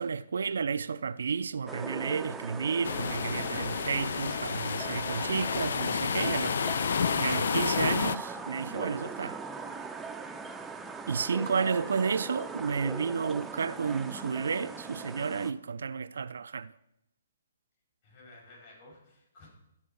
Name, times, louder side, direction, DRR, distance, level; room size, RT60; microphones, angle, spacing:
voice 1, 0.0-6.5 7.1-9.4 11.1-16.7, right 5 dB, 75° right, 0.4 m, -31 dB
sound 1, 1.7-15.5, right 4 dB, 5° right, 0.5 m, -40 dB
sound 2, 2.8-8.2, left 6 dB, 70° left, 0.3 m, -30 dB
voice 2, 6.4-7.1 18.0-19.5, left 2 dB, 45° left, 4.6 m, -50 dB
13.0 x 4.4 x 6.9 m
hypercardioid pair, 145°, 0 cm